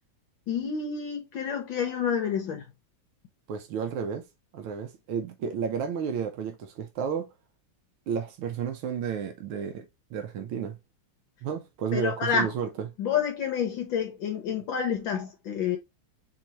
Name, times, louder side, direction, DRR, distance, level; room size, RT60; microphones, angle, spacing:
voice 1, 0.5-2.6 11.9-12.5 13.0-15.8, left 7 dB, 70° left, 1.6 m, -29 dB
voice 2, 3.5-4.3 4.5-7.3 8.1-10.8 11.4-12.9, right 7 dB, 90° right, 1.7 m, -32 dB
4.5 x 3.8 x 2.9 m
omnidirectional pair, 2.3 m